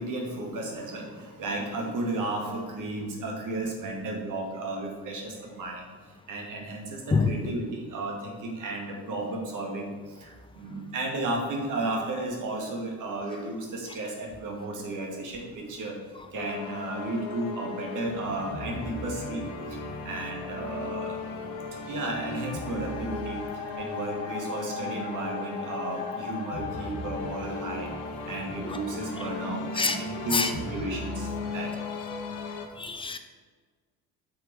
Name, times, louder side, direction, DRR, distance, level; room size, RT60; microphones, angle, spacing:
voice 1, 0.0-5.9 6.3-16.0 16.3-19.8 20.0-21.2 21.9-27.9 28.3-31.7, right 2 dB, 45° right, 1 dB, 2.1 m, -33 dB
sound 1, 16.3-32.7, left 3 dB, 55° left, 1.3 m, -36 dB
voice 2, 32.8-33.2, left 4 dB, 10° left, 7 dB, 0.8 m, -25 dB
7.8 x 6.6 x 4.8 m, 1.5 s
figure-of-eight pair, 55°, 44 cm